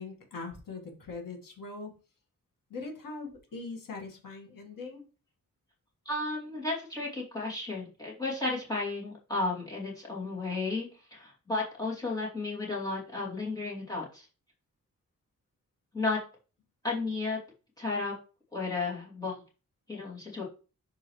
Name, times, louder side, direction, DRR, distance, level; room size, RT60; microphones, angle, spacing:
voice 1, 0.0-1.9 2.7-5.0, left 3 dB, 85° left, 1 dB, 1.9 m, -41 dB
voice 2, 6.0-14.3 15.9-16.2 16.8-17.4 17.8-18.2 18.5-19.3 19.9-20.4, left 3 dB, 10° left, -5 dB, 2.7 m, -33 dB
11.5 x 3.8 x 3.2 m, 0.34 s
wide cardioid pair, 175°, 32 cm